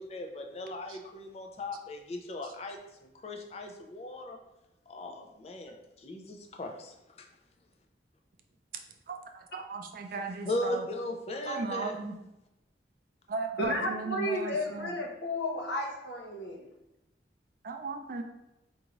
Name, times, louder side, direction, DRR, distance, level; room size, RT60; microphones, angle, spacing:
voice 1, 0.0-2.8 3.2-4.4 4.9-5.7 6.0-6.9 10.5-11.9, left 1 dB, 35° left, 2 dB, 0.4 m, -37 dB
voice 2, 9.1-10.9 11.5-12.2 13.3-14.9 17.6-18.2, right 4 dB, 50° right, 4 dB, 0.4 m, -36 dB
voice 3, 13.6-16.6, left 1 dB, 85° left, 0 dB, 0.8 m, -33 dB
4.6 x 2.6 x 3.0 m, 0.91 s
head